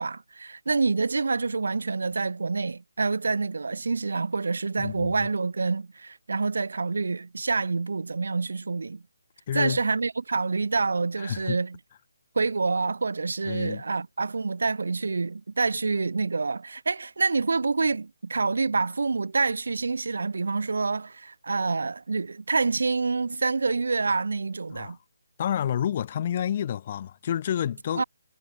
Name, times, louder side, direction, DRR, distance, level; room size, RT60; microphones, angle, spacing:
voice 1, 0.0-9.0 9.5-11.8 12.3-25.0 27.9-28.0, right 4 dB, 75° right, 2.6 m, -27 dB
voice 2, 4.8-5.3 9.5-9.8 11.2-11.6 13.4-13.8 24.7-25.0 25.4-28.0, left 10 dB, 30° left, 0.7 m, -29 dB
hypercardioid pair, 170°, 0 cm